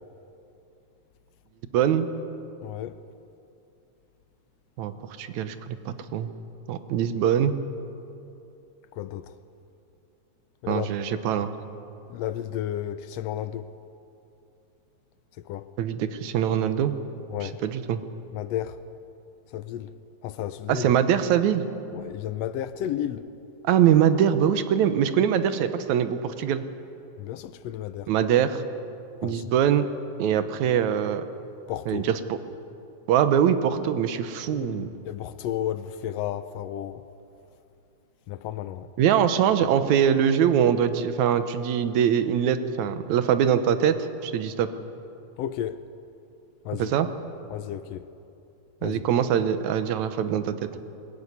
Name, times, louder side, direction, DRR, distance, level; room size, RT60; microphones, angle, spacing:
voice 1, 1.7-2.1 4.8-4.9 5.2-6.3 6.7-7.5 10.7-11.5 15.8-16.9 17.4-18.0 20.7-21.6 23.6-26.6 28.1-28.6 29.2-29.9 30.2-31.2 31.9-32.4 33.1-34.9 39.0-44.7 46.7-47.1 48.8-50.6, right 9 dB, 80° right, 2.3 m, -23 dB
voice 2, 2.6-3.0 8.9-9.3 10.6-10.9 12.1-13.7 15.4-15.7 17.3-17.6 18.3-18.8 19.5-19.9 20.2-20.9 21.9-23.2 27.2-28.1 29.2-29.4 31.7-32.1 34.5-37.0 38.3-38.9 45.4-45.8 46.6-46.9 47.5-48.1 48.8-49.1, left 11 dB, 75° left, 1.6 m, -32 dB
22.0 x 14.0 x 9.7 m
omnidirectional pair, 3.3 m